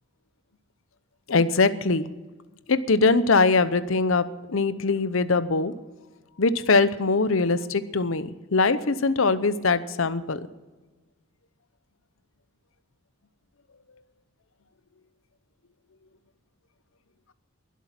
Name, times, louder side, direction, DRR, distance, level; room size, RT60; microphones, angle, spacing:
voice 1, 1.3-2.1 2.7-5.7 6.4-10.4, left 3 dB, 65° left, 14 dB, 0.8 m, -22 dB
22.0 x 8.3 x 5.9 m, 1.3 s
head